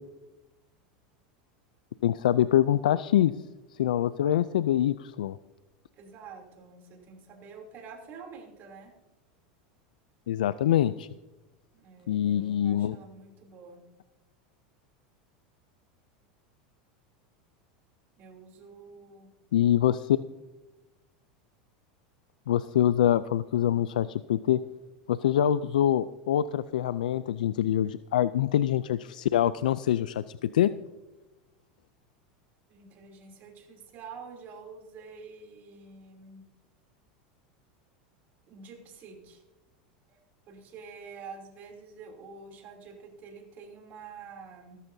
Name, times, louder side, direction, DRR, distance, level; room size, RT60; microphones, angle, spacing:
voice 1, 2.0-3.3 3.8-5.4 10.3-11.1 12.1-13.0 19.5-20.2 22.5-24.6 25.1-30.7, left 11 dB, 90° left, 15 dB, 0.4 m, -25 dB
voice 2, 5.9-8.9 11.7-13.8 18.2-19.3 32.7-36.5 38.5-39.4 40.1-40.2 40.5-44.8, right 5 dB, 45° right, 2 dB, 3.0 m, -47 dB
16.0 x 14.0 x 2.7 m, 1.1 s
supercardioid pair, 115°, 4 cm